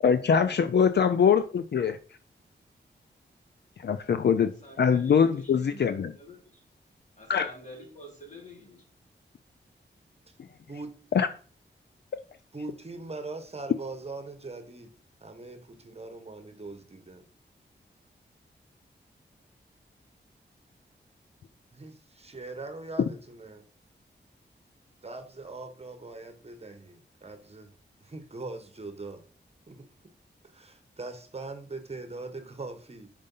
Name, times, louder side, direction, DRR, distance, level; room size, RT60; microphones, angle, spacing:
voice 1, 0.0-2.0 3.8-4.5 4.8-6.1 7.3-7.5 11.1-11.3, left 7 dB, 65° left, 0.5 m, -23 dB
voice 2, 4.6-6.6 7.2-8.8, left 1 dB, 40° left, 3.5 m, -47 dB
voice 3, 12.5-14.9 15.2-17.2 21.7-23.6 25.0-27.7 28.0-29.2 29.7-29.9 30.5-33.1, right 3 dB, 35° right, 1.2 m, -41 dB
5.3 x 5.3 x 5.4 m
wide cardioid pair, 75°, 19 cm